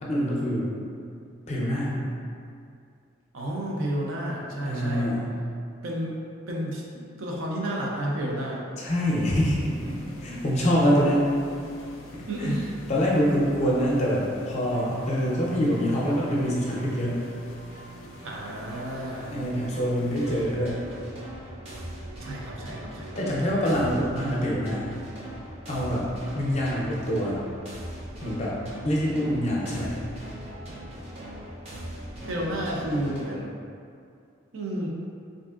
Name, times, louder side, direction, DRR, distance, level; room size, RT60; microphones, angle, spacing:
voice 1, 0.0-0.8 1.5-2.0 4.6-5.3 8.8-11.3 12.1-12.5 12.9-17.2 19.3-20.8 23.2-24.9 25.7-26.1 26.3-27.4 28.2-28.6 28.8-29.9, equal, 35° left, -5 dB, 0.5 m, -25 dB
voice 2, 3.3-5.1 5.8-6.2 6.5-8.6 12.3-12.7 18.2-19.3 22.2-23.2 32.2-33.5 34.5-34.9, right 1 dB, 80° right, -3 dB, 0.5 m, -31 dB
sound 1, 8.9-20.9, left 1 dB, 90° left, 0.4 m, -45 dB
sound 2, 14.7-33.2, right 1 dB, 30° right, 0.5 m, -41 dB
3.4 x 2.6 x 2.3 m, 2.4 s
head